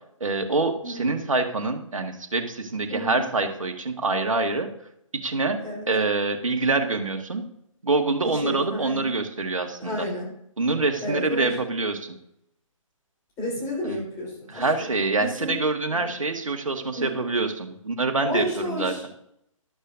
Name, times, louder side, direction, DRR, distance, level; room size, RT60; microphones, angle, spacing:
voice 1, 0.2-4.7 5.1-5.6 5.9-7.4 7.8-10.1 10.6-12.2 13.8-14.0 14.5-18.9, right 3 dB, 70° right, 5 dB, 1.8 m, -25 dB
voice 2, 0.8-1.1 2.9-3.3 5.6-5.9 8.2-9.1 9.8-10.3 11.0-11.6 13.4-14.7 15.2-15.6 15.9-16.0 16.9-17.3 18.2-19.0, left 1 dB, 15° left, -4 dB, 4.5 m, -31 dB
13.5 x 12.0 x 2.7 m, 0.75 s
figure-of-eight pair, 135°, 17 cm